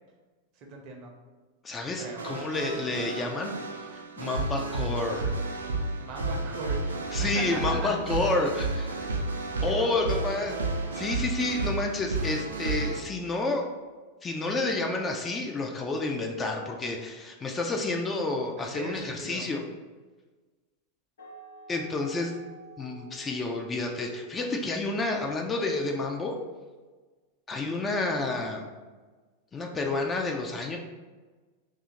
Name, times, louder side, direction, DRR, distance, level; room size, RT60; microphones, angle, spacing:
voice 1, 0.6-1.1 2.0-2.2 6.0-8.0 9.2-10.2 18.6-19.5, right 2 dB, 40° right, 1 dB, 0.7 m, -39 dB
voice 2, 1.6-3.5 3.9-5.4 7.1-9.1 9.6-10.6 10.9-13.7 14.2-19.6 21.7-22.3 22.8-26.4 27.5-28.7 29.5-30.8, left 2 dB, 20° left, 1 dB, 0.4 m, -30 dB
sound 1, 2.0-13.0, right 3 dB, 75° right, 0.4 m, -32 dB
sound 2, 21.2-26.6, right 1 dB, 65° left, 0.6 m, -52 dB
2.7 x 2.4 x 4.0 m, 1.3 s
figure-of-eight pair, 90°, 0 cm